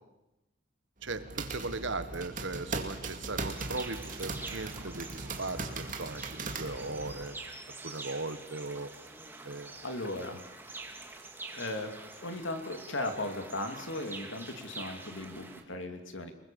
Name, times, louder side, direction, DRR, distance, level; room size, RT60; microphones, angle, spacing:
sound 1, 1.0-7.2, right 3 dB, 40° right, 2.2 m, -39 dB
voice 1, 1.0-7.4 7.8-8.9 9.4-9.7, right 3 dB, 70° right, 11 dB, 1.5 m, -38 dB
sound 2, 3.4-15.6, right 3 dB, 10° right, 2.0 m, -46 dB
voice 2, 9.8-10.4 11.5-11.9 12.2-16.3, left 2 dB, 75° left, 6 dB, 2.9 m, -37 dB
30.0 x 20.5 x 7.1 m, 0.96 s
head